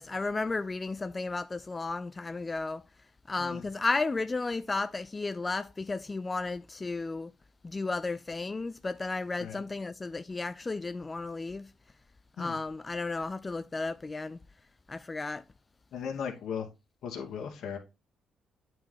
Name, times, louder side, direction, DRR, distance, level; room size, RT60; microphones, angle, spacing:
voice 1, 0.0-2.8 3.3-7.3 7.7-11.7 12.4-14.4 14.9-15.4, left 3 dB, 25° left, 0.3 m, -33 dB
voice 2, 15.9-16.7 17.0-17.8, left 7 dB, 70° left, 2.5 m, -37 dB
8.8 x 4.8 x 3.7 m
cardioid pair, 90°, 0 cm